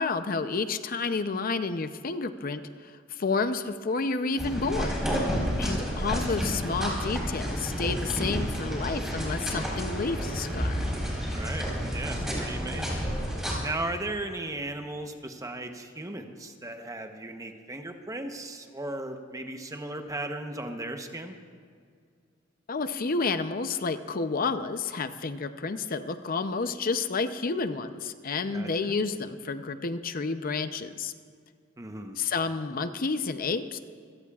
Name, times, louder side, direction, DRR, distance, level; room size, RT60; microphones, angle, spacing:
voice 1, 0.0-5.0 5.6-10.9 22.7-31.1 32.2-33.8, left 4 dB, 50° left, 10 dB, 0.6 m, -30 dB
sound 1, 4.4-13.5, equal, 5° right, 4.2 m, -30 dB
voice 2, 5.4-5.8 11.3-13.0 13.6-21.3 28.5-29.0 31.8-32.2, right 2 dB, 20° right, 5 dB, 0.9 m, -36 dB
26.0 x 17.0 x 2.4 m, 2.1 s
head